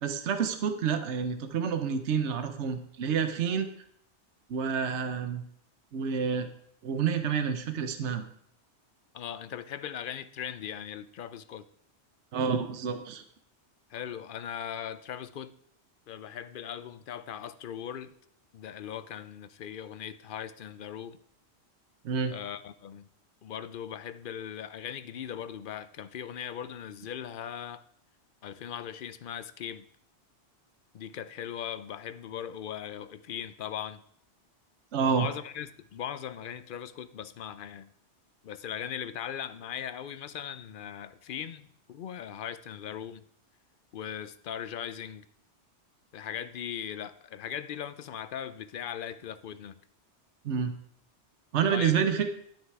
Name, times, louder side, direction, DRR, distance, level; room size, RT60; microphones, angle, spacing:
voice 1, 0.0-3.7 4.5-5.4 5.9-6.5 6.8-8.2 12.3-13.2 22.0-22.3 34.9-35.3 50.4-50.7 51.5-52.3, right 6 dB, 75° right, 8 dB, 1.1 m, -28 dB
voice 2, 9.1-11.6 13.9-15.5 16.1-18.1 18.5-21.2 22.3-23.1 23.4-27.8 28.4-29.9 30.9-34.0 35.0-37.9 38.4-43.2 43.9-45.3 46.1-49.8 51.7-52.1, left 9 dB, 55° left, 13 dB, 0.7 m, -39 dB
12.0 x 6.5 x 4.7 m, 0.68 s
omnidirectional pair, 1.2 m